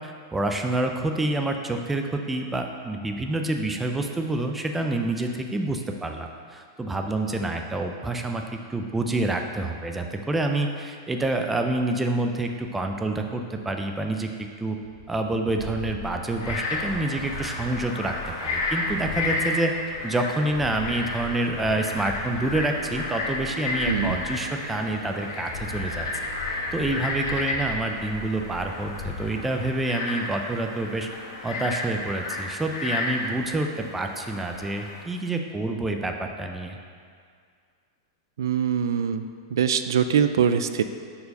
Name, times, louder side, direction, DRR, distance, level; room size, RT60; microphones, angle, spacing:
voice 1, 0.0-8.4 8.7-14.8 15.1-19.7 20.0-26.1 26.5-31.1 31.4-36.8, right 2 dB, 5° right, 3 dB, 0.3 m, -27 dB
sound 1, 14.8-19.3 19.7-24.3 24.7-25.2 25.5-29.3, left 3 dB, 50° left, 1.8 m, -40 dB
Frog, 16.3-35.0, left 2 dB, 90° left, 1.2 m, -32 dB
sound 2, 22.4-27.9, right 4 dB, 60° right, 0.9 m, -47 dB
voice 2, 38.4-39.2 39.5-40.8, right 8 dB, 85° right, 10 dB, 0.4 m, -23 dB
6.8 x 4.6 x 5.2 m, 2.1 s
supercardioid pair, 170°, 2 cm